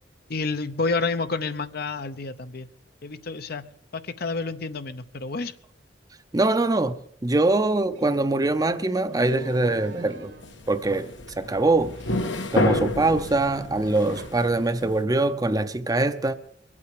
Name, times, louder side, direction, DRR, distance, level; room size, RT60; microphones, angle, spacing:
voice 1, 0.3-2.7 3.0-3.6 4.2-5.5, left 3 dB, 55° left, 0.8 m, -29 dB
voice 2, 6.3-10.3 10.7-12.0 12.5-16.4, right 2 dB, 20° right, 0.6 m, -23 dB
Slam, 8.0-8.2 9.0-10.6 11.6-13.0 13.4-13.5 14.1-14.8, right 2 dB, 65° right, 1.5 m, -44 dB
sound 1, 10.2-14.9, left 2 dB, 80° left, 1.4 m, -29 dB
22.0 x 8.6 x 6.7 m
head